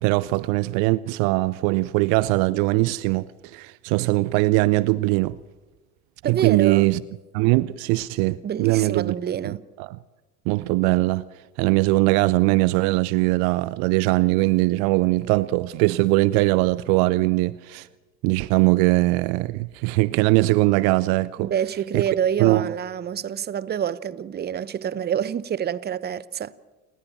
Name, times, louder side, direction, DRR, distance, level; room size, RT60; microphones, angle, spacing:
voice 1, 0.0-5.4 6.3-7.0 7.3-9.1 10.5-11.2 11.6-17.9 18.2-21.5 21.9-22.0 22.4-22.7, right 21 dB, 50° right, 0.7 m, -21 dB
voice 2, 6.2-6.9 8.4-9.6 21.4-26.5, right 9 dB, 20° right, 0.9 m, -27 dB
29.0 x 19.5 x 7.6 m
figure-of-eight pair, 75°, 45 cm